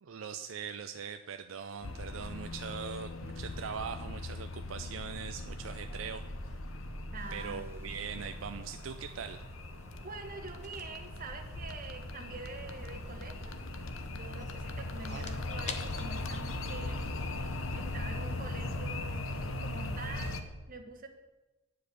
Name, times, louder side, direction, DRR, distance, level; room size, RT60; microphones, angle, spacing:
voice 1, 0.0-6.5 7.1-9.4 15.1-15.3, right 6 dB, 80° right, 8 dB, 0.5 m, -41 dB
sound 1, 1.8-20.4, left 2 dB, 85° left, 0.9 m, -40 dB
sound 2, 3.7-19.5, equal, 15° right, 1.2 m, -49 dB
voice 2, 7.1-7.9 10.0-13.6 14.1-17.0 17.7-21.1, right 3 dB, 45° right, 4 dB, 1.3 m, -45 dB
sound 3, 8.6-17.6, left 5 dB, 35° left, 0.9 m, -51 dB
9.7 x 5.2 x 8.1 m, 1.1 s
head